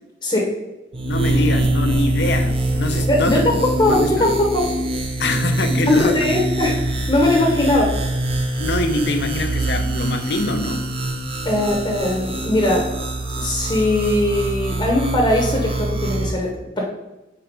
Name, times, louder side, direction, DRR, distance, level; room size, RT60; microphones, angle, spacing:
voice 1, 0.2-0.5 3.1-4.7 5.9-8.0 11.4-12.9 13.4-16.8, left 1 dB, 25° left, -1 dB, 0.9 m, -20 dB
sound 1, 0.9-16.3, right 1 dB, 30° right, 0.7 m, -24 dB
voice 2, 1.0-3.4 3.8-4.3 5.2-6.4 8.6-10.9, left 2 dB, 60° left, 6 dB, 0.7 m, -24 dB
4.6 x 4.6 x 5.0 m, 1.0 s
head